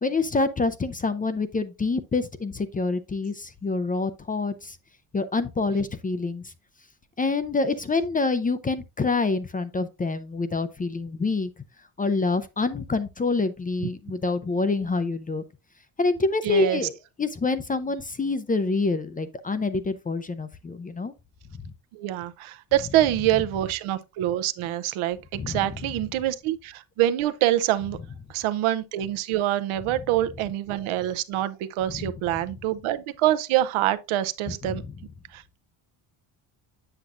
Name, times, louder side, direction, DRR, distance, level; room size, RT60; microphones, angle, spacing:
voice 1, 0.0-4.8 5.1-6.5 7.2-11.5 12.0-15.4 16.0-21.1 25.3-25.7 31.9-32.1 34.7-34.8, left 3 dB, 20° left, 0.4 m, -26 dB
voice 2, 16.4-16.8 21.9-28.0 28.3-34.8 35.3-35.6, right 13 dB, 85° right, 0.8 m, -25 dB
7.9 x 7.1 x 2.5 m
cardioid pair, 140°, 48 cm